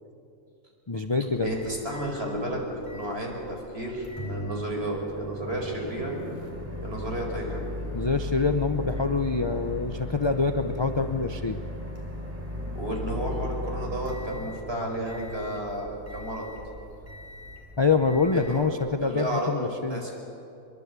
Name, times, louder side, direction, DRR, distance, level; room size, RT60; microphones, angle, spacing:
voice 1, 0.9-1.5 7.9-11.6 17.8-20.0, left 4 dB, 30° left, 7 dB, 0.5 m, -25 dB
Microwave oven, 1.3-19.2, left 1 dB, 10° right, 4.4 m, -38 dB
voice 2, 1.4-2.6 2.9-6.1 6.8-7.7 12.7-16.5 18.3-18.5 19.0-20.1, right 1 dB, 40° right, 0 dB, 5.0 m, -32 dB
23.5 x 22.5 x 8.3 m, 2.7 s
omnidirectional pair, 1.6 m